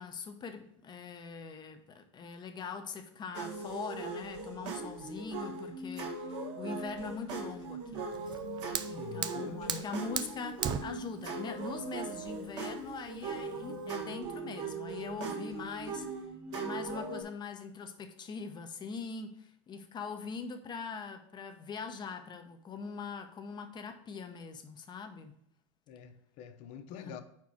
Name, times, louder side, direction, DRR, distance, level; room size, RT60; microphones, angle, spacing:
voice 1, 0.0-8.1 8.8-16.1 16.5-25.3 26.9-27.2, left 5 dB, 30° left, 0.9 m, -42 dB
sound 1, 3.3-17.2, right 3 dB, 75° right, 1.6 m, -40 dB
Fire, 8.1-14.1, right 8 dB, 30° right, 0.4 m, -39 dB
voice 2, 8.8-9.9 25.9-27.2, left 6 dB, 55° left, 0.7 m, -46 dB
4.6 x 4.5 x 6.0 m
supercardioid pair, 105°, 15 cm